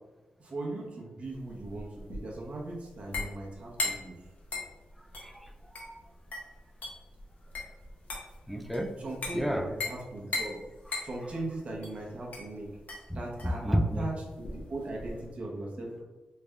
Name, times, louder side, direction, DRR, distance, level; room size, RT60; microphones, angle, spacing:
voice 1, 0.4-4.1 9.0-10.6 11.0-12.7 13.1-16.0, right 2 dB, 50° right, -2 dB, 0.8 m, -39 dB
sound 1, 1.3-15.3, left 3 dB, 65° left, 0.8 m, -39 dB
voice 2, 5.2-6.0 8.5-8.9 9.3-9.7 10.9-11.0 13.6-14.0, equal, ahead, 4 dB, 0.4 m, -31 dB
3.3 x 2.4 x 3.4 m, 1.1 s
wide cardioid pair, 100°, 3 cm